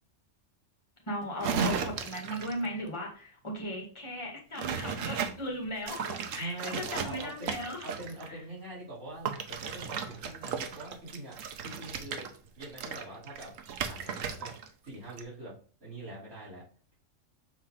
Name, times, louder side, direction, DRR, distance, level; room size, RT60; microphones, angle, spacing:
voice 1, 1.0-7.9 8.3-8.4, equal, 25° left, -1 dB, 2.0 m, -37 dB
sound 1, 1.4-2.7 4.6-5.3 5.8-8.3 9.3-14.7 14.9-15.2, right 6 dB, 85° right, 1.1 m, -35 dB
voice 2, 6.3-7.5 7.8-11.4 11.6-12.3 12.5-13.5 13.8-14.5 14.8-15.5 15.8-16.6, right 1 dB, 55° right, -8 dB, 3.7 m, -43 dB
6.9 x 4.2 x 3.7 m, 0.42 s
omnidirectional pair, 1.3 m